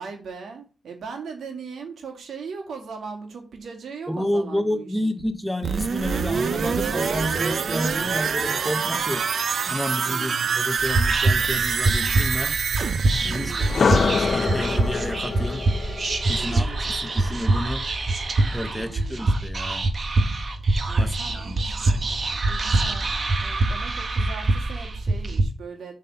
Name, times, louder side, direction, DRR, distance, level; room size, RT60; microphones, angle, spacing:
voice 1, 0.0-5.1 10.0-10.6 13.2-13.8 16.4-16.9 18.7-19.2 20.9-22.2 22.5-23.1 23.4-25.9, right 5 dB, 75° right, 2.1 m, -39 dB
voice 2, 4.1-9.3 9.7-12.6 13.2-15.7 16.3-17.9 18.5-19.9 21.0-21.6, left 1 dB, 5° left, 0.7 m, -30 dB
sound 1, 5.6-15.3 15.7-15.8, right 6 dB, 55° right, 0.6 m, -26 dB
Whispering, 10.8-25.4, right 2 dB, 40° right, 1.0 m, -24 dB
sound 2, 13.6-17.6, left 5 dB, 45° left, 0.3 m, -26 dB
7.4 x 4.1 x 5.5 m
wide cardioid pair, 130°, 0 cm